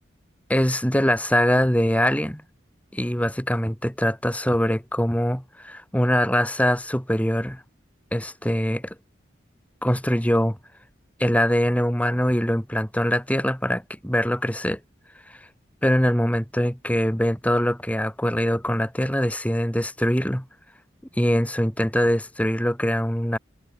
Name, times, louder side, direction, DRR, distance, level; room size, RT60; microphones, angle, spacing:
voice 1, 0.5-2.4 2.9-7.6 8.1-8.9 9.8-10.6 11.2-14.8 15.3-15.5 15.8-20.5 21.2-23.4, equal, 10° left, 6.6 m, -23 dB
head